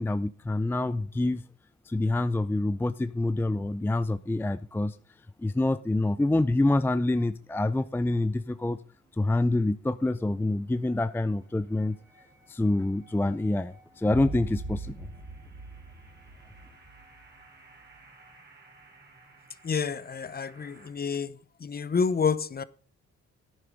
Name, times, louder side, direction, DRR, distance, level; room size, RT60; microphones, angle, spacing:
voice 1, 0.0-1.4 1.9-4.9 5.4-8.8 9.2-12.0 12.5-14.9, left 2 dB, 5° left, 0.5 m, -26 dB
sound 1, 9.2-9.3 9.7-9.8 11.8-11.9 12.2-20.9, right 3 dB, 35° right, 4.5 m, -44 dB
voice 2, 19.7-21.3 21.6-22.6, left 5 dB, 30° left, 0.9 m, -28 dB
11.0 x 9.8 x 5.2 m
cardioid pair, 90°, 30 cm